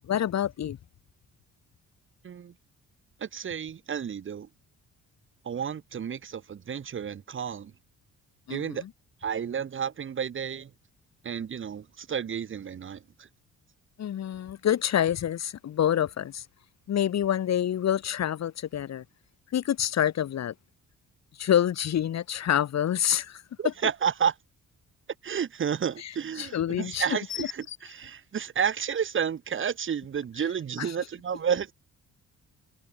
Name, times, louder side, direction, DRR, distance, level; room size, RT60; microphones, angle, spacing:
voice 1, 0.0-0.8 8.5-8.9 14.0-16.4 16.9-19.0 19.5-20.5 21.4-23.7 26.0-26.1 26.4-27.0 27.4-27.8 30.8-30.9, left 10 dB, 60° left, 2.4 m, -27 dB
voice 2, 3.2-4.5 5.4-7.7 8.5-8.8 9.2-10.7 11.2-13.3 23.6-24.3 25.2-31.7, right 7 dB, 40° right, 1.1 m, -31 dB
cardioid pair, 90°, 30 cm